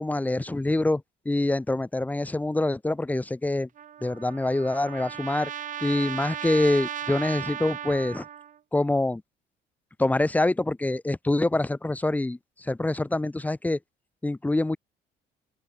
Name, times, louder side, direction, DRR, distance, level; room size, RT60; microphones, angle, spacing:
voice 1, 0.0-3.7 4.0-5.5 5.8-8.3 8.7-9.2 10.0-13.8 14.2-14.8, left 2 dB, 10° left, 1.0 m, -25 dB
Trumpet, 3.8-8.6, right 10 dB, 50° right, 1.8 m, -36 dB
open air
cardioid pair, 110°, 17 cm